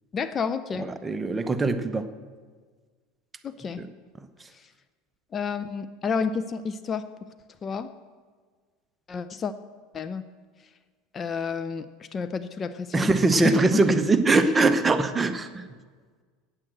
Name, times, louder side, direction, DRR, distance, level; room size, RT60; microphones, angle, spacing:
voice 1, 0.1-0.9 3.4-3.8 5.3-7.1 7.6-7.9 9.1-9.5 9.9-10.2 11.1-13.1 13.4-13.8 14.4-14.5, left 5 dB, 30° left, 12 dB, 0.5 m, -30 dB
voice 2, 0.7-2.1 3.8-3.9 12.9-15.6, right 3 dB, 15° right, 9 dB, 0.8 m, -22 dB
8.8 x 8.5 x 7.7 m, 1.5 s
supercardioid pair, 105°, 0 cm